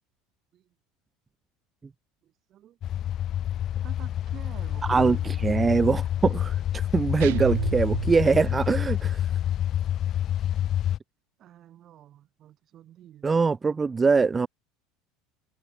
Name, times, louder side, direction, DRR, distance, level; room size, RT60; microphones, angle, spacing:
voice 1, 2.2-2.8 3.7-5.7 11.4-13.3, right 12 dB, 45° right, 7.7 m, -50 dB
sound 1, 2.8-11.0, left 11 dB, 45° left, 0.5 m, -28 dB
voice 2, 4.9-9.3 13.2-14.5, right 4 dB, 20° right, 0.3 m, -23 dB
sound 2, 7.2-8.6, right 19 dB, 85° right, 0.5 m, -31 dB
supercardioid pair, 110°, 0 cm